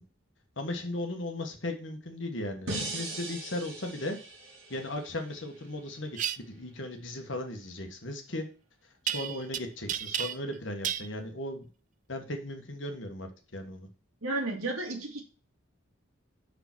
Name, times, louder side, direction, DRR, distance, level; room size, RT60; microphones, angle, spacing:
voice 1, 0.6-4.2 4.7-8.5 9.0-11.7 12.1-13.9, left 1 dB, 60° left, 5 dB, 1.5 m, -37 dB
sound 1, 2.7-5.8, right 2 dB, 65° right, 3.2 m, -39 dB
sound 2, 6.1-6.4 9.1-9.6 9.9-10.6 10.8-11.1, right 9 dB, 35° right, 0.3 m, -32 dB
voice 2, 14.2-15.2, right 2 dB, 90° right, 2 dB, 2.1 m, -32 dB
5.9 x 5.0 x 6.1 m, 0.37 s
head